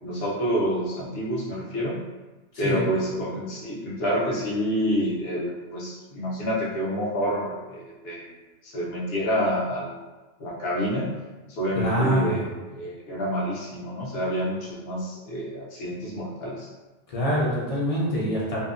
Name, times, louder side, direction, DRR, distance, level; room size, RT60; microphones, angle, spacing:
voice 1, 0.0-2.0 2.6-8.3 8.6-10.0 10.4-11.1 11.5-16.7, equal, 65° left, -5 dB, 0.9 m, -28 dB
voice 2, 11.7-12.5 17.1-18.6, equal, 40° left, -6 dB, 0.6 m, -25 dB
2.7 x 2.1 x 2.4 m, 1.2 s
omnidirectional pair, 1.2 m